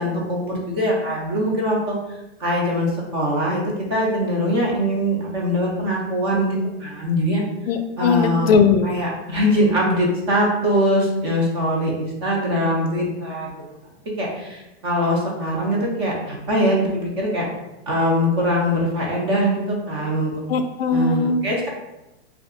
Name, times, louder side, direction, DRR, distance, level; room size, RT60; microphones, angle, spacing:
voice 1, 0.0-2.0 2.4-7.4 8.0-8.5 8.8-13.5 14.2-17.4 17.9-20.3 20.9-21.7, equal, 25° right, -3 dB, 0.4 m, -22 dB
voice 2, 7.7-8.9 20.5-21.4, left 5 dB, 65° left, 7 dB, 0.4 m, -19 dB
2.6 x 2.4 x 3.6 m, 0.98 s
supercardioid pair, 165°, 33 cm